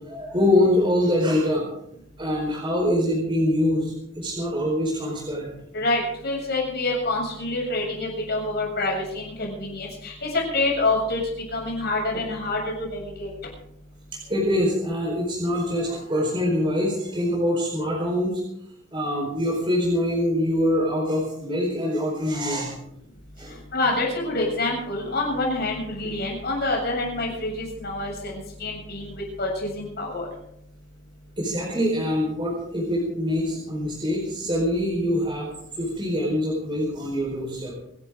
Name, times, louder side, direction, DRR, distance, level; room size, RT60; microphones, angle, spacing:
voice 1, 0.0-1.6 2.2-5.5 14.1-18.4 18.9-22.7 23.4-23.6 31.4-35.5 35.7-37.7, left 1 dB, 25° right, -3 dB, 4.7 m, -24 dB
voice 2, 5.7-11.2 11.5-12.6 12.9-13.3 23.7-30.3, left 2 dB, 55° left, -1 dB, 7.4 m, -27 dB
27.0 x 12.0 x 3.9 m, 0.76 s
head